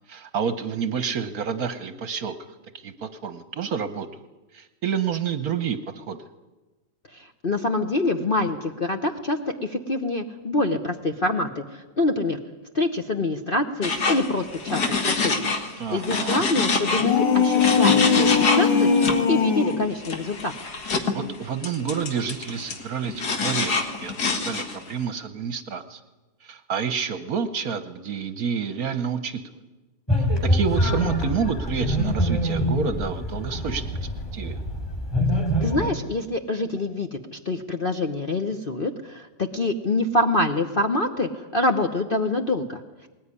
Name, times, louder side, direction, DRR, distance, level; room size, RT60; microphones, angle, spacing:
voice 1, 0.1-2.4 2.8-4.2 4.5-6.2 15.8-16.4 21.1-26.0 26.4-29.6 30.4-33.9 34.3-34.6, right 7 dB, 55° right, 11 dB, 1.3 m, -29 dB
voice 2, 7.1-12.4 12.7-18.9 19.3-20.5 35.6-43.1, left 2 dB, 40° left, 5 dB, 0.9 m, -26 dB
sound 1, 13.8-15.7 16.0-19.2 20.0-21.2 21.6-24.9, left 4 dB, 55° left, 2.3 m, -26 dB
sound 2, 16.9-19.9, left 6 dB, 80° left, 2.2 m, -20 dB
sound 3, 30.1-35.9, equal, 10° left, 3.7 m, -25 dB
20.0 x 19.5 x 9.8 m, 1.1 s
omnidirectional pair, 2.1 m